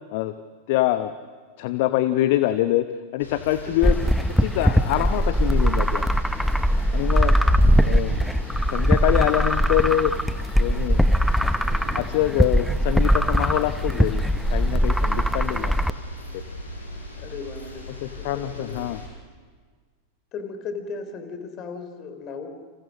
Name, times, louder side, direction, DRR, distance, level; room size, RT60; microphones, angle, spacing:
voice 1, 0.7-1.1 1.6-4.0 4.4-6.1 6.4-6.5 6.9-7.4 7.8-8.2 8.7-10.1 10.6-11.1 11.9-14.2 14.5-15.7 16.3-16.4 18.0-19.0, left 14 dB, 50° left, 12 dB, 0.9 m, -25 dB
sound 1, 3.2-19.1, left 1 dB, 75° left, 6.4 m, -39 dB
sound 2, 3.8-15.9, equal, ahead, 0.9 m, -21 dB
voice 2, 8.2-8.8 11.7-12.0 17.2-18.9 20.3-22.5, left 4 dB, 35° left, 8 dB, 3.6 m, -38 dB
30.0 x 27.5 x 6.4 m, 1.5 s
figure-of-eight pair, 90°, 0 cm